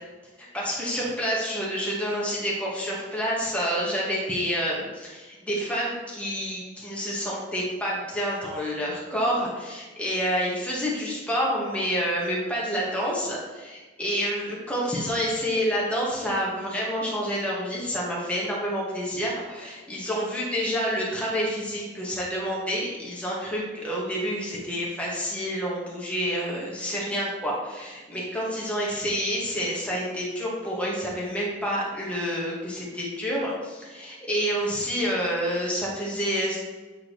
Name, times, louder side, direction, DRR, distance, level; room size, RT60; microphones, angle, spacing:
voice 1, 0.5-36.6, equal, 5° left, -5 dB, 1.4 m, -28 dB
8.3 x 3.6 x 3.1 m, 1.3 s
head